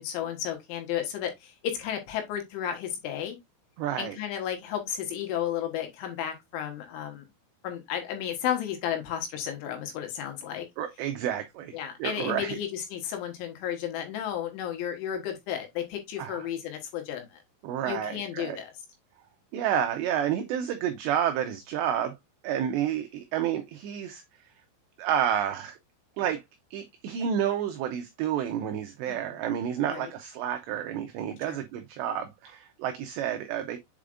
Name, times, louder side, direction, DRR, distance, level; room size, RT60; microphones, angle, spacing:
voice 1, 0.0-3.4 4.0-7.3 7.6-10.7 11.7-17.4 17.9-18.7 29.1-29.2 29.9-30.1 31.5-31.6, left 10 dB, 75° left, 3.7 m, -33 dB
voice 2, 3.8-4.2 10.8-12.6 16.2-16.5 17.6-18.6 19.5-22.1 22.4-24.2 25.0-25.8 26.2-26.4 26.7-33.8, right 9 dB, 85° right, 2.4 m, -30 dB
7.7 x 4.9 x 2.4 m
omnidirectional pair, 5.7 m